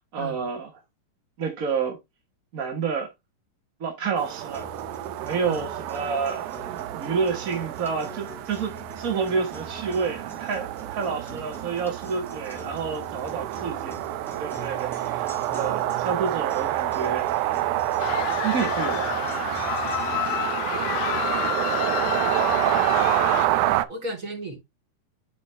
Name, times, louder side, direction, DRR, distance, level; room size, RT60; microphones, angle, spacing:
voice 1, 0.1-0.7 1.4-2.0 2.5-3.1 3.8-4.7 5.2-14.0 14.4-17.5 18.4-19.1, right 5 dB, 50° right, 1.0 m, -29 dB
sound 1, 4.2-23.9, right 14 dB, 85° right, 2.1 m, -28 dB
sound 2, 4.5-20.5, left 1 dB, ahead, 2.1 m, -44 dB
sound 3, 18.0-23.5, left 12 dB, 75° left, 1.5 m, -29 dB
voice 2, 22.1-22.8 23.9-24.6, right 1 dB, 25° right, 3.7 m, -36 dB
9.4 x 5.1 x 3.3 m
omnidirectional pair, 3.5 m